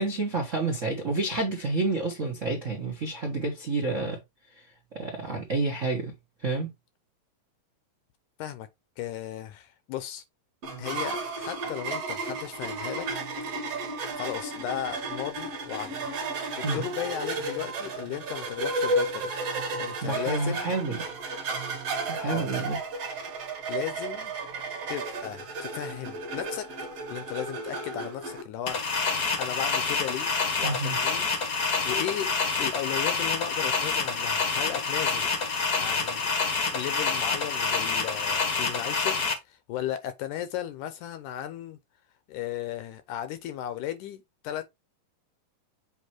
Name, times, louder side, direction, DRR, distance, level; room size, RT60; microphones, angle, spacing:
voice 1, 0.0-4.2 4.9-6.1 6.4-6.7 16.6-16.8 20.0-20.9 22.1-22.8 30.6-30.9, right 3 dB, 75° right, 0.7 m, -29 dB
voice 2, 9.0-10.2 10.8-13.1 13.5-13.6 14.2-16.0 16.5-19.3 19.8-20.7 22.2-22.7 23.7-24.3 24.9-26.7 27.1-29.0 29.4-30.3 30.6-31.3 31.6-35.3 35.8-36.3 36.7-39.2 39.5-41.8 42.3-44.6, left 11 dB, 75° left, 2.0 m, -35 dB
sound 1, 10.6-28.4, right 3 dB, 50° right, 2.5 m, -33 dB
sound 2, 28.7-39.3, left 4 dB, 60° left, 1.0 m, -27 dB
8.1 x 3.0 x 4.4 m
omnidirectional pair, 4.0 m